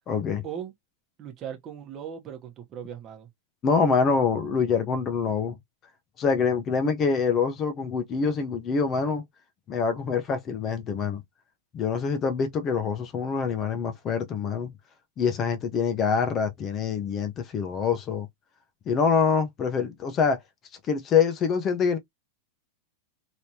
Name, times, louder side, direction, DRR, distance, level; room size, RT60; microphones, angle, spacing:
voice 1, 0.1-0.4 3.6-5.6 6.2-9.2 9.7-11.2 11.7-14.7 15.2-18.3 18.9-20.4 20.9-22.0, left 5 dB, 30° left, 0.8 m, -25 dB
voice 2, 1.2-3.3, right 8 dB, 30° right, 1.1 m, -38 dB
3.4 x 2.9 x 2.8 m
supercardioid pair, 145°, 0 cm